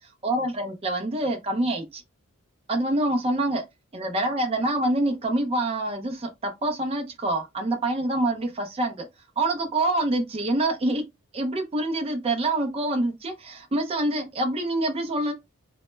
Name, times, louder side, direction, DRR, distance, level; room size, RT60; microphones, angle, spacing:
voice 1, 0.2-2.0 2.7-3.6 3.9-9.1 9.4-11.0 11.3-15.3, right 1 dB, 25° right, 0.4 m, -26 dB
2.1 x 2.0 x 3.1 m
head